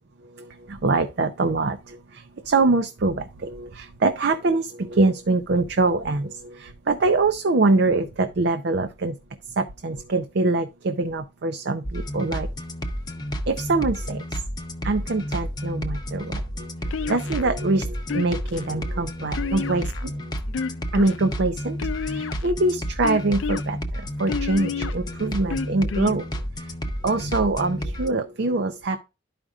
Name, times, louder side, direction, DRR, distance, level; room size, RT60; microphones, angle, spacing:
voice 1, 0.2-9.2 9.6-12.5 13.5-14.4 14.8-20.3 20.9-26.7 27.0-29.0, right 3 dB, 55° right, 0.6 m, -24 dB
sound 1, 11.8-28.1, equal, 20° left, 0.7 m, -31 dB
sound 2, 16.9-17.5 18.1-18.6 19.3-20.1 20.5-21.2 21.8-22.5 23.0-23.6 24.3-24.9 25.5-26.1, left 5 dB, 65° left, 0.4 m, -30 dB
12.0 x 5.0 x 2.4 m
head